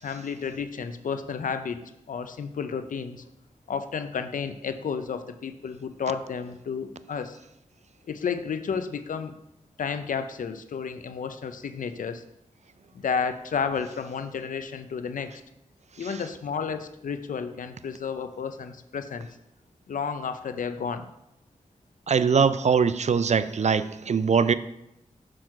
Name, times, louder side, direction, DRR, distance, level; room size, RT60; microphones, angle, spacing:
voice 1, 0.0-3.2 3.7-7.4 8.1-9.4 9.8-12.2 12.9-15.4 16.0-19.3 19.9-21.1, left 6 dB, 85° left, 10 dB, 0.6 m, -32 dB
voice 2, 22.1-24.5, right 6 dB, 60° right, 14 dB, 0.4 m, -22 dB
6.3 x 6.2 x 4.8 m, 0.85 s
cardioid pair, 55°, 13 cm